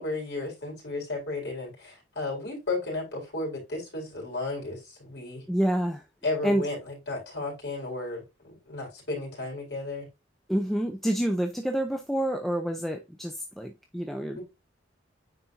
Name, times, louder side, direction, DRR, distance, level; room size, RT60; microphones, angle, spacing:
voice 1, 0.0-5.4 6.2-10.0 14.3-14.4, left 2 dB, 65° left, 4.2 m, -34 dB
voice 2, 5.5-6.0 6.4-6.7 10.5-14.4, right 1 dB, ahead, 0.7 m, -28 dB
9.5 x 4.3 x 2.6 m
head